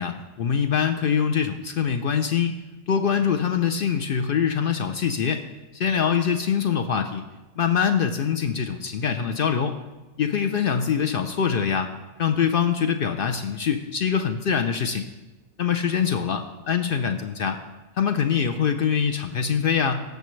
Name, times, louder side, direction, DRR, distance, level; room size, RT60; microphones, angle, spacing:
voice 1, 0.0-2.6 2.9-5.4 5.7-7.2 7.6-9.8 10.2-11.9 12.2-15.1 15.6-17.6 18.0-20.0, left 7 dB, 60° left, 7 dB, 0.7 m, -24 dB
16.5 x 6.6 x 3.1 m, 1.1 s
omnidirectional pair, 1.2 m